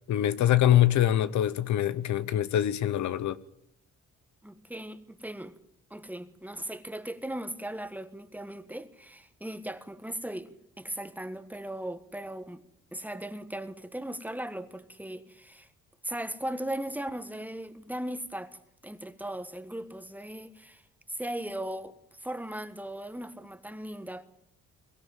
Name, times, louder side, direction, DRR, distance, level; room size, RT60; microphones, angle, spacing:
voice 1, 0.1-3.4, left 12 dB, 70° left, 0.9 m, -24 dB
voice 2, 4.4-5.6 5.9-10.5 10.8-12.6 12.9-15.7 16.0-18.6 18.8-20.8 21.1-24.2, right 1 dB, 5° right, 1.5 m, -38 dB
23.0 x 14.0 x 9.1 m
cardioid pair, 90°, 30 cm